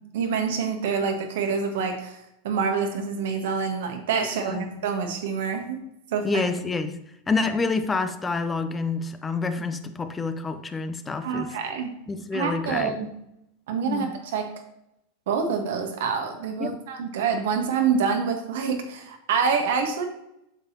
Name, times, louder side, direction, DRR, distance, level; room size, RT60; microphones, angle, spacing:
voice 1, 0.1-2.2 2.4-5.8 6.1-6.4 11.2-11.9 12.3-13.1 13.7-14.5 15.3-20.0, right 6 dB, 65° right, 4 dB, 1.4 m, -26 dB
voice 2, 4.3-4.7 6.2-7.0 7.3-11.6 12.1-13.0 13.8-14.1 16.6-16.9, left 4 dB, 20° left, 10 dB, 0.6 m, -28 dB
8.8 x 6.8 x 2.8 m, 0.82 s
figure-of-eight pair, 90°, 0 cm